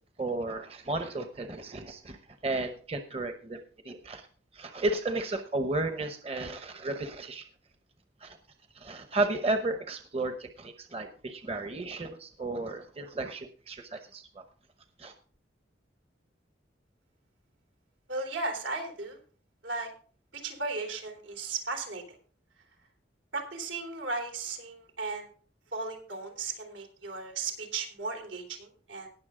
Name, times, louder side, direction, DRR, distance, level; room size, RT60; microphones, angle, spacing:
voice 1, 0.2-2.2 2.4-4.2 4.5-7.4 8.2-8.4 8.8-14.4 15.0-15.1, right 2 dB, 30° right, 7 dB, 0.9 m, -33 dB
voice 2, 18.1-19.2 19.6-19.9 20.3-22.0 23.3-25.3 25.7-29.1, right 3 dB, 90° right, 3 dB, 3.4 m, -36 dB
19.0 x 7.0 x 3.7 m, 0.42 s
head